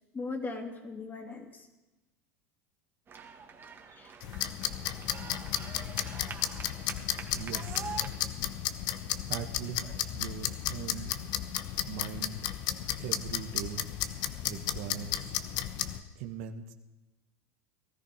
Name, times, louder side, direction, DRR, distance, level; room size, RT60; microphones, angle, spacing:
voice 1, 0.1-1.7 3.9-4.1 8.0-8.1 9.8-10.0 10.9-11.0, left 3 dB, 25° left, 3 dB, 2.8 m, -39 dB
sound 1, 3.1-8.1, right 5 dB, 30° right, 2.0 m, -45 dB
sound 2, 4.2-16.0, left 11 dB, 55° left, 1.0 m, -34 dB
voice 2, 7.3-7.8 9.3-11.1 11.9-12.4 13.0-13.9 14.4-15.1 16.2-16.7, right 9 dB, 65° right, 6 dB, 1.3 m, -40 dB
19.0 x 13.5 x 5.1 m, 1.1 s
hypercardioid pair, 90°, 8 cm